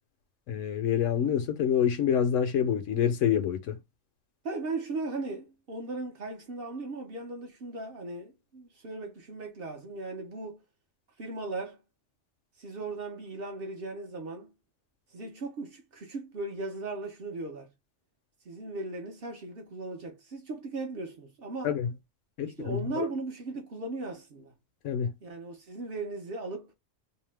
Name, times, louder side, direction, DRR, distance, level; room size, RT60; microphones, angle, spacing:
voice 1, 0.5-3.8 21.6-21.9 22.4-23.1 24.8-25.1, left 8 dB, 75° left, 0.9 m, -27 dB
voice 2, 4.4-10.6 11.2-11.8 12.6-14.5 15.1-17.7 18.4-21.7 22.4-24.5 25.2-26.7, right 3 dB, 55° right, 0.8 m, -37 dB
2.8 x 2.1 x 3.2 m
omnidirectional pair, 1.3 m